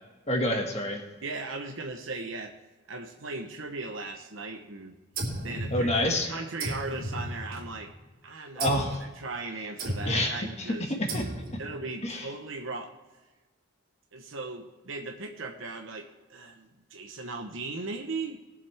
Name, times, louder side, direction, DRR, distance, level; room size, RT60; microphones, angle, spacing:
voice 1, 0.3-1.0 5.7-6.3 8.6-9.0 10.0-11.2 12.0-12.3, left 1 dB, 30° left, 2 dB, 1.9 m, -28 dB
voice 2, 1.2-2.5 2.9-5.0 5.4-7.9 8.2-10.9 11.6-12.9 14.1-18.4, right 3 dB, 70° right, 3 dB, 1.0 m, -38 dB
sound 1, 5.2-6.2 6.6-7.9 8.6-9.0 9.8-10.3 11.1-11.7, right 1 dB, 45° right, 3.0 m, -34 dB
20.5 x 7.4 x 3.5 m, 1.2 s
head